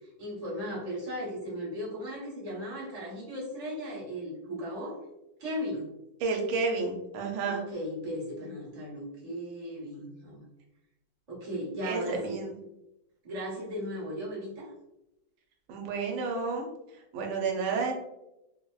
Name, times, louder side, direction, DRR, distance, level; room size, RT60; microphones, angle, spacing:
voice 1, 0.0-5.0 5.4-5.9 7.4-10.4 11.3-12.4 13.2-14.7, equal, 30° right, -6 dB, 0.6 m, -36 dB
voice 2, 6.2-7.6 11.8-12.5 15.7-16.7 17.1-17.9, right 4 dB, 85° right, 2 dB, 1.4 m, -30 dB
4.0 x 2.0 x 2.2 m, 0.90 s
omnidirectional pair, 2.2 m